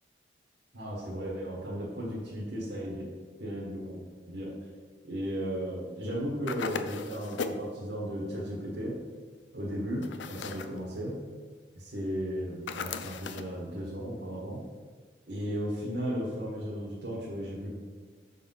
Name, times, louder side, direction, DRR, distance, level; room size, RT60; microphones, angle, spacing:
voice 1, 0.7-3.1 3.4-4.0 4.3-4.5 5.0-8.9 9.5-11.2 11.7-14.6 15.3-17.7, equal, 65° right, -6 dB, 1.4 m, -35 dB
sound 1, 6.5-7.7 10.0-10.8 12.7-13.5, left 5 dB, 80° left, 0.4 m, -37 dB
6.5 x 4.1 x 5.5 m, 1.5 s
head